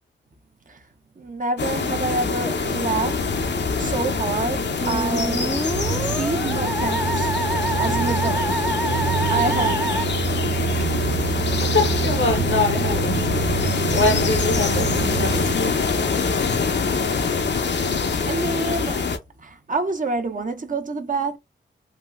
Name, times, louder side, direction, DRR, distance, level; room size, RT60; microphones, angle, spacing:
voice 1, 1.2-3.4 3.8-5.7 6.2-7.3 7.8-8.7 9.3-10.0 18.2-19.1 19.4-21.4, right 3 dB, 40° right, 0.9 m, -27 dB
sound 1, 1.6-19.2, left 5 dB, 60° left, 0.7 m, -24 dB
sound 2, 2.2-16.5, right 8 dB, 75° right, 0.4 m, -28 dB
Musical instrument, 4.8-10.0, right 2 dB, 5° right, 0.6 m, -27 dB
voice 2, 11.5-15.8, left 3 dB, 75° left, 1.0 m, -24 dB
3.7 x 2.2 x 2.4 m
cardioid pair, 45°, 21 cm